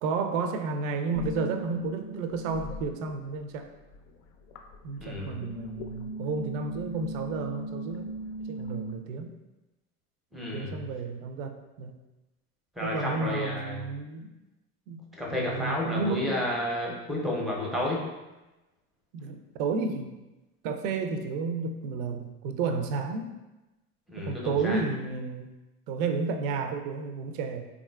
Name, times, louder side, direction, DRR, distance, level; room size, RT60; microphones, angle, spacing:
voice 1, 0.0-3.7 4.8-8.2 8.5-9.4 10.5-11.9 12.8-14.3 14.9-15.0 15.4-16.5 19.1-20.1 20.6-23.3 24.2-25.5 25.9-27.7, right 4 dB, 60° right, 6 dB, 0.5 m, -32 dB
sound 1, 1.1-3.5 3.7-9.0, right 1 dB, 65° left, 0.5 m, -39 dB
voice 2, 5.0-5.5 10.3-10.7 12.8-13.8 15.2-18.0 24.1-24.8, left 1 dB, ahead, -3 dB, 0.6 m, -31 dB
3.6 x 2.4 x 2.2 m, 1.0 s
hypercardioid pair, 70°, 45 cm